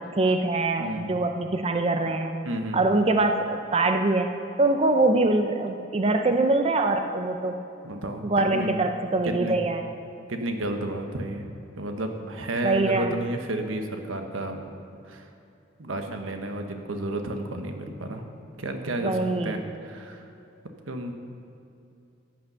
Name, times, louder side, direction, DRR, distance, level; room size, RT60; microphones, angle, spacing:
voice 1, 0.0-2.3 2.7-4.3 4.6-7.6 8.2-9.8 12.6-13.1 19.0-19.6, right 2 dB, 30° right, 5 dB, 0.5 m, -23 dB
voice 2, 0.8-1.2 2.4-2.8 7.8-8.9 9.2-9.6 10.3-11.5 11.8-14.7 15.0-15.3 15.8-18.2 18.6-20.3 20.6-21.1, right 1 dB, 85° right, 5 dB, 1.2 m, -32 dB
13.5 x 8.8 x 5.5 m, 2.7 s
head